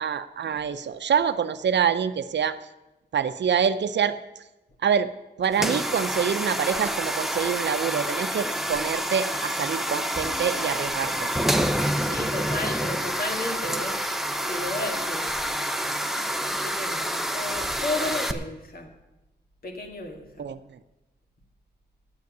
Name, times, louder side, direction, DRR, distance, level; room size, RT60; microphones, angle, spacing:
voice 1, 0.0-2.6 3.1-4.2 4.8-5.1 5.4-11.3 20.4-20.6, right 7 dB, 85° right, 12 dB, 0.7 m, -26 dB
sound 1, 5.5-18.3, equal, ahead, 0.7 m, -28 dB
voice 2, 11.9-14.0 14.4-15.5 16.4-18.9 19.6-20.5, left 2 dB, 55° left, 3 dB, 2.2 m, -33 dB
9.5 x 8.3 x 9.5 m, 0.99 s
wide cardioid pair, 155°, 18 cm